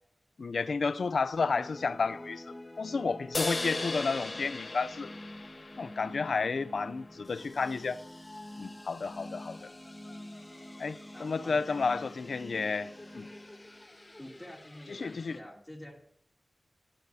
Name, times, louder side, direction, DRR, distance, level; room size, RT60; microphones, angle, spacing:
voice 1, 0.4-2.4 2.8-5.1 5.8-8.0 8.6-9.7 10.8-13.3 14.9-15.4, left 4 dB, 75° left, 0.4 m, -31 dB
sound 1, 1.4-15.4, left 1 dB, 25° left, 1.6 m, -47 dB
sound 2, 3.3-6.8, left 2 dB, 50° left, 0.8 m, -37 dB
voice 2, 11.1-11.9 14.2-16.0, left 1 dB, 10° left, 2.9 m, -48 dB
18.0 x 12.0 x 2.8 m
cardioid pair, 50°, 0 cm